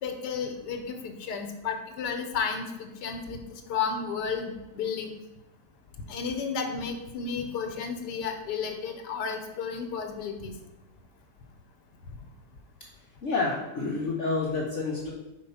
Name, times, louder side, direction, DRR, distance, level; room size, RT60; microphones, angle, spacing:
voice 1, 0.0-5.1 6.1-10.5, left 5 dB, 90° left, 4 dB, 1.4 m, -32 dB
voice 2, 13.2-15.1, left 3 dB, 55° left, -2 dB, 0.9 m, -29 dB
4.7 x 4.2 x 5.4 m, 1.0 s
omnidirectional pair, 1.8 m